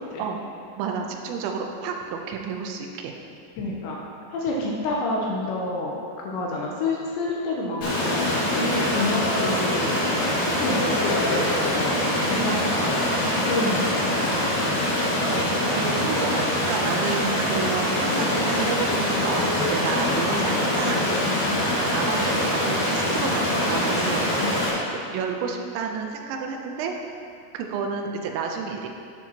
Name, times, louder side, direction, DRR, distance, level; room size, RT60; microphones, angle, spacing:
voice 1, 0.8-3.1 3.6-3.8 8.6-9.0 12.4-12.7 13.6-13.8 15.3-21.2 21.5-24.6 25.1-27.0 27.5-28.9, right 5 dB, 80° right, 2 dB, 2.7 m, -30 dB
voice 2, 3.6-4.0 4.3-12.9 13.5-14.7 19.8-20.0 20.3-20.5 24.4-24.6, left 2 dB, 80° left, -3 dB, 2.8 m, -29 dB
Stream, 7.8-24.7, left 1 dB, 50° left, 2.8 m, -24 dB
11.5 x 8.8 x 2.9 m, 2.5 s
omnidirectional pair, 6.0 m